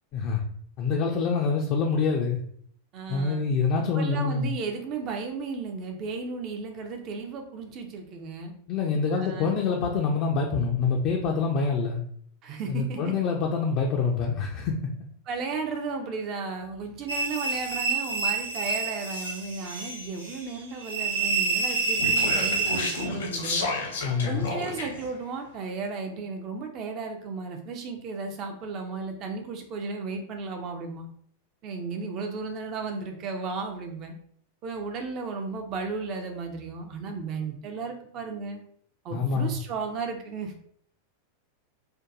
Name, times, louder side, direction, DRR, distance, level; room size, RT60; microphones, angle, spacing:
voice 1, 0.1-0.4 0.8-2.4 3.1-4.5 8.7-12.0 12.7-14.8 24.0-24.5 39.1-39.6, left 5 dB, 40° left, 0 dB, 0.4 m, -26 dB
voice 2, 2.9-3.4 4.0-8.5 9.1-9.5 12.4-13.1 15.3-23.7 24.3-31.1 31.6-34.1 34.6-38.6 39.0-40.5, right 4 dB, 35° right, 4 dB, 0.5 m, -34 dB
sound 1, 17.1-23.0, right 4 dB, 85° right, 0.8 m, -28 dB
Speech, 21.6-25.1, left 3 dB, 65° left, 0.8 m, -32 dB
4.5 x 2.2 x 2.5 m, 0.62 s
figure-of-eight pair, 90°, 0 cm